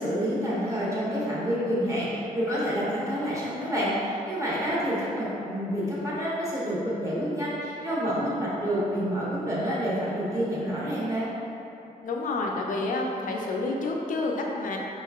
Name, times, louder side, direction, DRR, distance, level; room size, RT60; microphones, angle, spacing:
voice 1, 0.0-11.3, equal, 20° right, -8 dB, 0.9 m, -28 dB
voice 2, 12.0-14.8, left 2 dB, 65° left, 0 dB, 0.5 m, -29 dB
5.0 x 3.0 x 2.4 m, 2.9 s
wide cardioid pair, 170°, 15 cm